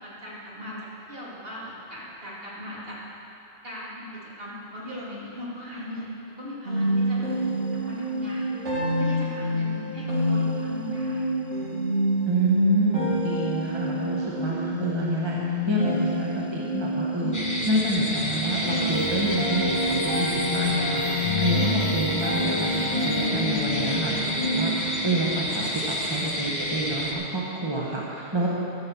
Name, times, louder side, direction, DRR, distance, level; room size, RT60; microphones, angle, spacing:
voice 1, 0.0-3.0 3.6-7.3 7.7-8.6 9.0-11.3 12.4-12.7, equal, 55° right, -8 dB, 3.1 m, -38 dB
sound 1, 6.6-25.1, equal, 75° right, 3.0 m, -28 dB
voice 2, 12.2-28.5, right 1 dB, 25° right, -4 dB, 1.2 m, -28 dB
sound 2, 17.3-27.1, left 1 dB, 15° left, 1.1 m, -30 dB
sound 3, 18.9-24.2, left 2 dB, 65° left, 1.3 m, -31 dB
12.5 x 7.6 x 7.1 m, 3.0 s
omnidirectional pair, 1.2 m